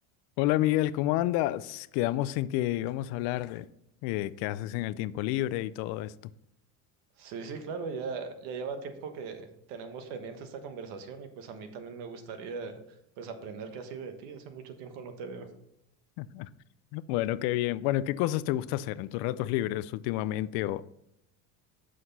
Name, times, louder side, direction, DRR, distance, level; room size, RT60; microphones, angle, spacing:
voice 1, 0.4-3.7 4.0-6.1 16.2-16.5 16.9-20.8, left 15 dB, 80° left, 0.5 m, -29 dB
voice 2, 7.2-12.8 13.2-15.5, right 5 dB, 85° right, 1.3 m, -39 dB
7.8 x 6.3 x 4.1 m
cardioid pair, 150°, 35 cm